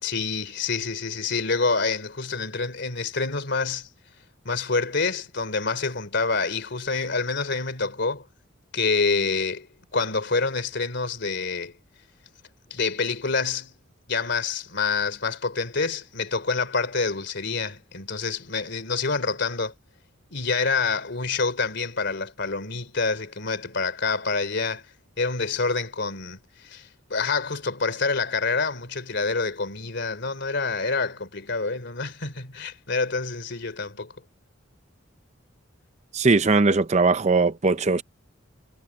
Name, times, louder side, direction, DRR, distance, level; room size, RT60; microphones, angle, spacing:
voice 1, 0.0-3.9 4.4-8.2 8.7-11.7 12.7-13.8 14.1-19.7 20.3-24.8 25.2-26.4 26.6-26.8 27.1-34.1, left 4 dB, 60° left, 3.3 m, -27 dB
voice 2, 36.1-38.0, right 3 dB, 35° right, 0.7 m, -20 dB
head